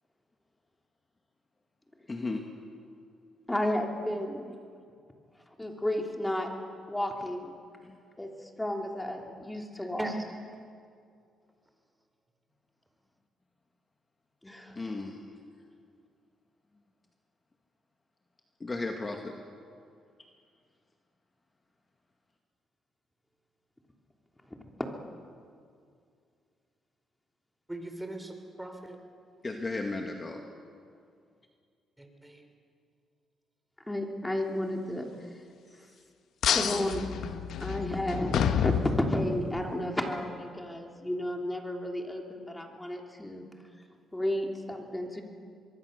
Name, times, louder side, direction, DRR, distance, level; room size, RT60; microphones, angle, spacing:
voice 1, 2.1-2.5 7.8-8.0 14.8-15.2 18.6-19.4 29.4-30.5, left 3 dB, 25° left, 2 dB, 2.0 m, -35 dB
voice 2, 3.5-4.4 5.6-6.5 6.9-7.5 8.2-8.3 8.6-10.1 14.4-14.8 33.9-35.1 36.5-37.1 37.6-43.5 44.1-45.2, left 1 dB, 10° left, 2 dB, 3.2 m, -32 dB
voice 3, 27.7-29.0 32.0-32.4, right 1 dB, 10° right, 5 dB, 3.6 m, -39 dB
sound 1, 36.4-39.6, left 8 dB, 75° left, 1.3 m, -29 dB
24.5 x 22.0 x 6.7 m, 2.3 s
cardioid pair, 90°, 0 cm